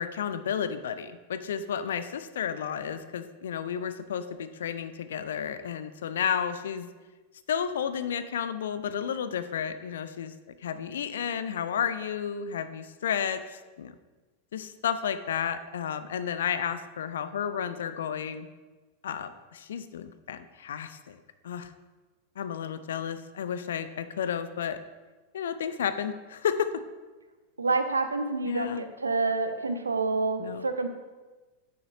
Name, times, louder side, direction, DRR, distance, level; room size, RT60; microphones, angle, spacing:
voice 1, 0.0-6.9 7.5-10.3 10.6-13.9 14.5-18.5 19.0-21.2 21.4-21.7 22.4-24.8 25.3-26.7 28.5-28.8 30.4-30.7, left 8 dB, 60° left, 12 dB, 0.4 m, -32 dB
voice 2, 27.6-30.9, right 3 dB, 75° right, 8 dB, 0.6 m, -28 dB
9.3 x 5.6 x 2.7 m, 1.2 s
figure-of-eight pair, 90°, 0 cm